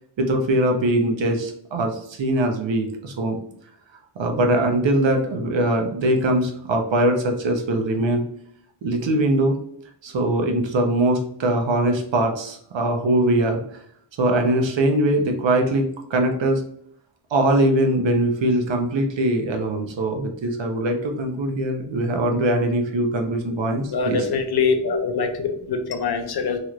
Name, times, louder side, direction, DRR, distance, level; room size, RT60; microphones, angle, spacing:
voice 1, 0.2-3.4 4.2-8.2 8.8-9.6 10.0-13.6 14.2-16.6 17.3-24.3 24.9-25.0, right 1 dB, 60° right, 3 dB, 0.8 m, -22 dB
voice 2, 23.9-26.6, left 5 dB, 50° left, 5 dB, 0.6 m, -23 dB
3.0 x 2.5 x 2.9 m, 0.67 s
wide cardioid pair, 105°, 50 cm